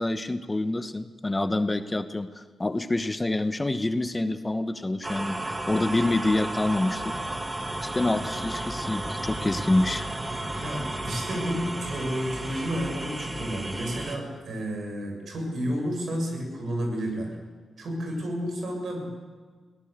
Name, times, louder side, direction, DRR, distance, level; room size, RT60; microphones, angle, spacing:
voice 1, 0.0-7.2 7.8-10.1, left 2 dB, 20° left, 10 dB, 1.2 m, -27 dB
sound 1, 5.0-14.2, right 1 dB, 20° right, 2.2 m, -33 dB
voice 2, 10.5-17.3 17.8-19.2, equal, 70° right, 2 dB, 7.2 m, -31 dB
22.5 x 18.0 x 8.1 m, 1.5 s
cardioid pair, 85°, 0 cm